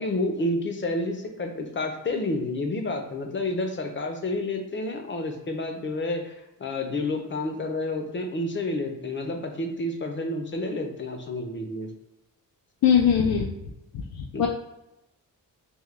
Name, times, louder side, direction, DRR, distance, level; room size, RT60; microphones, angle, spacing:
voice 1, 0.0-6.3 6.6-11.9 14.3-14.5, left 2 dB, 35° left, 4 dB, 0.6 m, -29 dB
voice 2, 12.8-13.5 13.9-14.5, left 8 dB, 80° left, 1 dB, 0.5 m, -21 dB
3.6 x 2.2 x 3.2 m, 0.89 s
wide cardioid pair, 130°, 36 cm